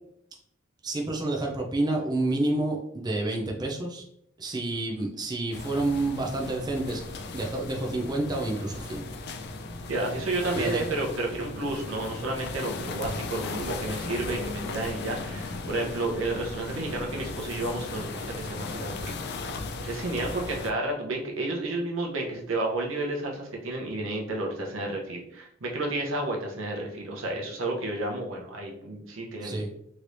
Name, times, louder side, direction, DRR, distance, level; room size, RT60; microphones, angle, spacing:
voice 1, 0.8-4.0 4.4-9.0 10.6-10.8 29.4-29.7, right 2 dB, 20° right, 1 dB, 0.4 m, -29 dB
sound 1, 5.5-20.7, left 3 dB, 55° left, 0.4 m, -37 dB
voice 2, 9.9-29.6, right 2 dB, 90° right, 0 dB, 0.8 m, -31 dB
3.2 x 3.0 x 2.5 m, 0.73 s
head